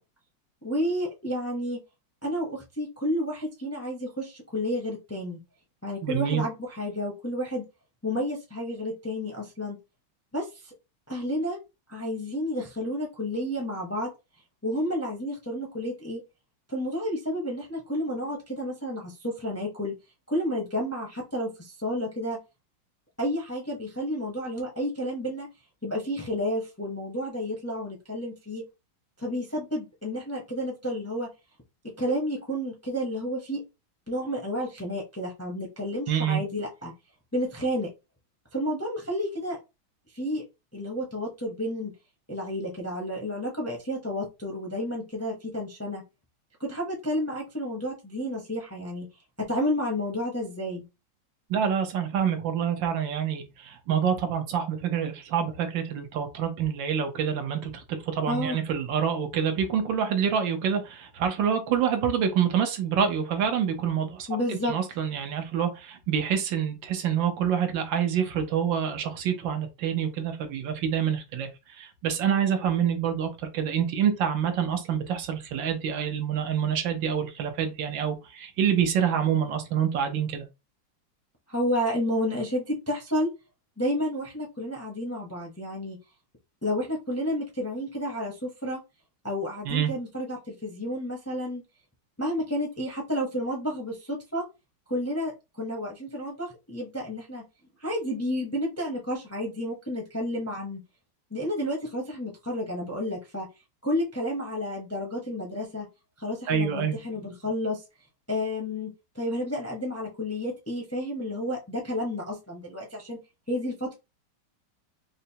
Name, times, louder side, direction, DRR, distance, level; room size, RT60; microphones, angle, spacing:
voice 1, 0.6-1.8 2.2-5.4 5.8-7.6 8.0-9.8 10.3-10.7 11.1-11.6 11.9-14.1 14.6-16.2 16.7-20.0 20.3-22.4 23.2-25.5 25.8-28.6 29.2-31.3 31.8-33.6 34.1-36.9 37.3-37.9 38.5-39.6 40.1-40.4 40.7-41.9 42.3-46.0 46.6-49.1 49.4-50.8 58.3-58.6 64.3-64.7 81.5-83.3 83.8-86.0 86.6-88.8 89.2-91.6 92.2-94.4 94.9-97.4 97.8-100.8 101.3-103.5 103.8-105.9 106.2-107.8 108.3-108.9 109.1-113.2 113.5-113.9, equal, 15° left, 0.5 m, -31 dB
voice 2, 6.0-6.4 36.1-36.4 51.5-71.5 71.8-80.4 89.6-89.9 106.5-107.0, right 8 dB, 85° right, 1.5 m, -27 dB
4.9 x 2.1 x 2.8 m
omnidirectional pair, 2.0 m